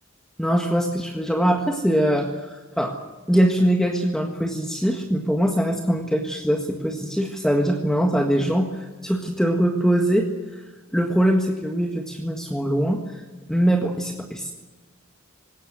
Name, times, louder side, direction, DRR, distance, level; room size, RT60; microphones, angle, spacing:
voice 1, 0.4-3.0 3.3-10.3 10.5-10.6 10.9-13.2 13.5-14.5, equal, 5° left, 2 dB, 1.6 m, -22 dB
20.5 x 17.5 x 9.4 m, 1.3 s
head